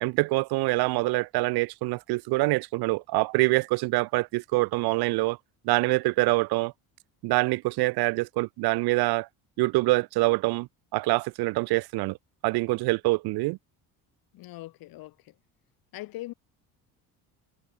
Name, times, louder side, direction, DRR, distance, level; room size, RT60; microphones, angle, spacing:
voice 1, 0.0-5.4 5.6-6.7 7.2-9.3 9.6-12.2 12.4-13.6, right 22 dB, 85° right, 1.1 m, -25 dB
voice 2, 14.3-15.4 15.9-16.3, left 17 dB, 70° left, 3.8 m, -41 dB
cardioid pair, 165°, 37 cm